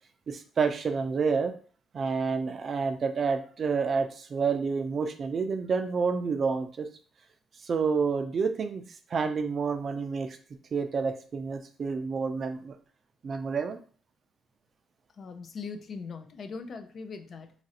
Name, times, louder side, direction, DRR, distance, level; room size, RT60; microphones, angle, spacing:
voice 1, 0.3-1.5 1.9-6.9 7.6-8.8 9.1-10.4 10.7-12.8 13.2-13.8, right 5 dB, 50° right, 8 dB, 0.4 m, -29 dB
voice 2, 15.2-17.5, left 5 dB, 55° left, 7 dB, 0.4 m, -40 dB
3.0 x 2.5 x 2.8 m, 0.43 s
cardioid pair, 90°, 0 cm